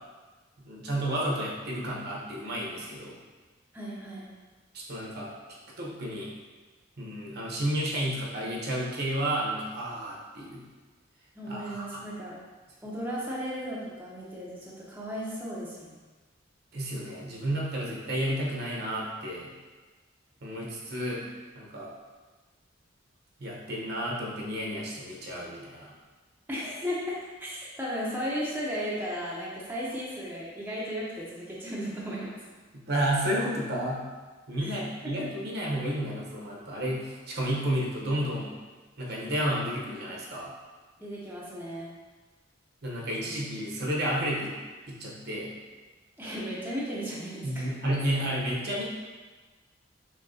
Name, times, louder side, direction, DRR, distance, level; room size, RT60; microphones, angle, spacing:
voice 1, 0.6-3.2 4.7-5.3 5.8-6.3 7.0-10.6 11.5-12.0 16.7-19.5 20.4-21.2 21.5-21.9 23.4-25.9 32.7-34.1 34.5-38.6 39.0-40.5 42.8-44.5 44.9-45.5 47.4-48.8, right 1 dB, 55° right, -4 dB, 1.0 m, -31 dB
voice 2, 3.7-4.3 11.4-12.4 12.8-16.0 26.5-32.3 34.6-34.8 41.0-41.9 46.2-47.7, equal, 10° right, -7 dB, 0.7 m, -35 dB
6.5 x 2.9 x 2.7 m, 1.3 s
head